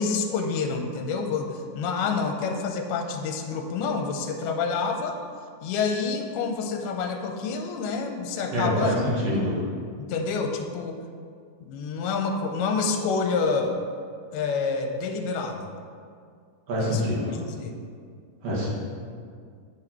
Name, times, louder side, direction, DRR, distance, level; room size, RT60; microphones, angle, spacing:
voice 1, 0.0-5.2 5.6-8.9 9.3-9.5 10.0-11.0 11.6-13.8 14.3-15.7 16.8-17.0 17.6-17.8, left 5 dB, 85° left, 4 dB, 2.5 m, -28 dB
voice 2, 8.5-9.6 16.7-17.4 18.4-18.7, equal, 55° right, -7 dB, 2.1 m, -25 dB
8.7 x 4.1 x 4.3 m, 2.2 s
omnidirectional pair, 4.4 m